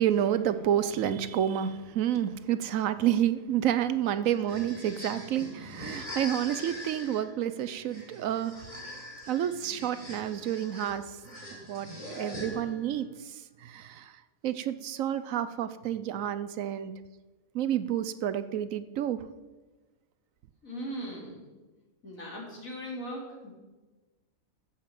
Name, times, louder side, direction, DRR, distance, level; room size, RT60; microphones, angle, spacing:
voice 1, 0.0-8.8 9.3-11.4 11.7-14.1 14.4-16.9 17.5-19.2, right 10 dB, 70° right, 1.0 m, -29 dB
sound 1, 4.2-12.9, left 1 dB, 25° left, 4.8 m, -43 dB
voice 2, 20.6-21.4 22.0-23.5, equal, 70° left, 3.8 m, -39 dB
11.5 x 7.5 x 7.5 m
omnidirectional pair, 1.5 m